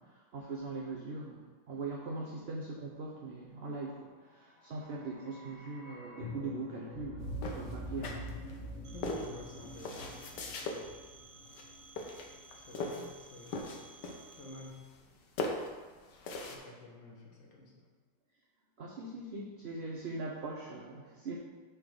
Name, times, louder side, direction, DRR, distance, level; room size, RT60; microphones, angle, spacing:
voice 1, 0.0-8.3 18.8-21.4, right 3 dB, 50° right, -2 dB, 0.8 m, -41 dB
sound 1, 4.5-12.6 12.9-13.0, equal, 50° left, 1.8 m, -45 dB
sound 2, 7.4-8.6 9.0-10.8 11.5-11.7 12.0-13.1 13.4-14.4 14.7-15.1 15.4-16.6, left 3 dB, 70° left, 1.5 m, -39 dB
Telephone, 8.8-14.7, right 3 dB, 85° right, 1.6 m, -56 dB
voice 2, 8.9-10.6 12.5-13.6 14.4-14.9 16.4-17.9, left 2 dB, 85° left, -1 dB, 2.1 m, -50 dB
7.6 x 3.9 x 6.5 m, 1.4 s
omnidirectional pair, 2.0 m